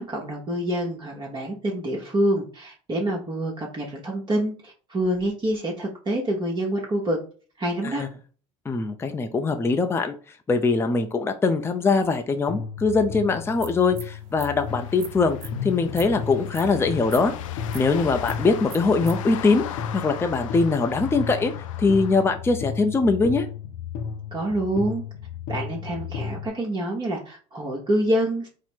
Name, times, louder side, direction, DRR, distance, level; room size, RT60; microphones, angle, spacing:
voice 1, 0.0-7.2 7.6-8.0 24.3-25.0 25.5-28.5, right 1 dB, 30° right, -2 dB, 1.0 m, -26 dB
voice 2, 8.7-10.1 10.5-15.4 15.6-17.3 17.7-21.5 21.8-23.5, left 4 dB, 15° left, 6 dB, 0.5 m, -22 dB
sound 1, 12.5-26.5, left 7 dB, 60° left, 0.8 m, -34 dB
sound 2, 13.6-19.1, right 10 dB, 60° right, 0.7 m, -44 dB
sound 3, 14.7-22.2, left 10 dB, 90° left, 0.4 m, -38 dB
4.2 x 2.1 x 4.5 m, 0.39 s
hypercardioid pair, 85°, 16 cm